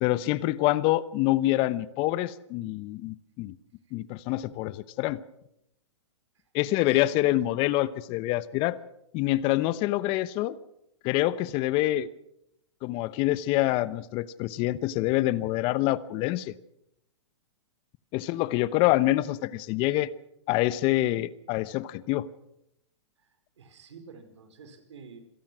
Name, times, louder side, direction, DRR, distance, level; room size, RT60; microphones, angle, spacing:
voice 1, 0.0-3.6 3.9-5.2 6.5-8.8 9.1-10.6 11.0-12.1 12.8-16.5 18.1-20.1 20.5-22.3, left 16 dB, 35° left, 17 dB, 0.9 m, -26 dB
voice 2, 6.7-7.5 23.2-25.2, right 5 dB, 75° right, 9 dB, 4.7 m, -50 dB
26.5 x 18.0 x 6.2 m, 0.80 s
hypercardioid pair, 125°, 15 cm